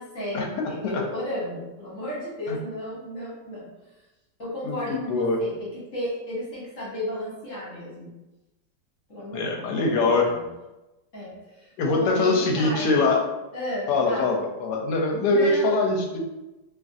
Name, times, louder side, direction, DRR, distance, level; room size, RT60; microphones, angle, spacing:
voice 1, 0.0-3.7 4.4-8.1 9.1-10.4 11.1-13.1 13.5-14.4 15.3-15.8, left 1 dB, 50° left, -7 dB, 1.1 m, -33 dB
voice 2, 4.6-5.4 9.3-10.2 11.8-13.2 13.9-16.2, left 3 dB, 75° left, 1 dB, 1.1 m, -23 dB
2.8 x 2.5 x 2.4 m, 1.0 s
omnidirectional pair, 2.0 m